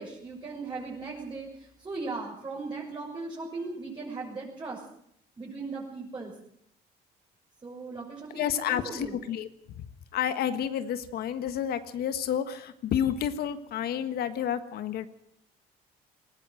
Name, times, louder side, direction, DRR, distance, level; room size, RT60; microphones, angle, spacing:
voice 1, 0.0-4.8 5.4-6.3 7.6-9.2, right 3 dB, 25° right, -5 dB, 6.8 m, -38 dB
voice 2, 8.3-9.5 10.1-15.1, left 9 dB, 65° left, 11 dB, 1.5 m, -30 dB
19.5 x 18.0 x 7.9 m, 0.71 s
cardioid pair, 110°, 17 cm